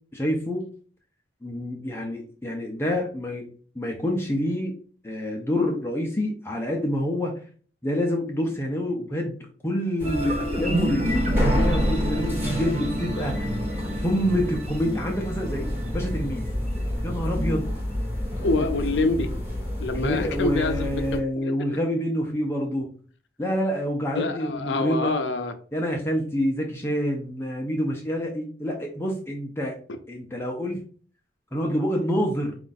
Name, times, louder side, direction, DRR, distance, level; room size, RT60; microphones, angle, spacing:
voice 1, 0.1-0.7 1.4-3.5 3.8-4.8 5.0-7.4 7.8-13.5 14.0-16.4 17.0-17.7 18.6-18.7 19.9-22.9 23.4-25.1 25.7-29.7 30.1-30.8 31.5-32.6, equal, 15° left, 0.5 m, -27 dB
sound 1, 10.0-21.2, left 1 dB, 10° right, 1.0 m, -28 dB
sound 2, 10.0-17.1, right 1 dB, 40° right, 0.7 m, -31 dB
voice 2, 18.4-19.3 19.8-20.9 21.4-21.5 24.1-25.5, left 3 dB, 70° left, 0.5 m, -25 dB
4.4 x 2.5 x 3.9 m
head